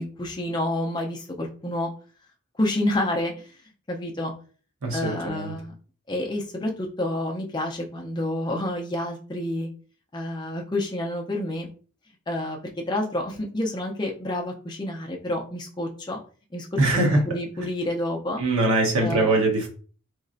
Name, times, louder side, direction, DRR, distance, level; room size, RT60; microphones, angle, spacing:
voice 1, 0.0-1.9 2.6-3.3 3.9-4.3 4.9-5.7 6.1-9.7 10.1-11.7 12.3-12.6 12.9-16.2 16.5-16.7 16.9-18.4 19.0-19.5, left 1 dB, 20° left, 1 dB, 0.4 m, -29 dB
voice 2, 4.8-5.6 16.8-17.2 18.4-19.7, right 2 dB, 80° right, 0 dB, 0.9 m, -22 dB
3.0 x 2.5 x 2.4 m, 0.40 s
head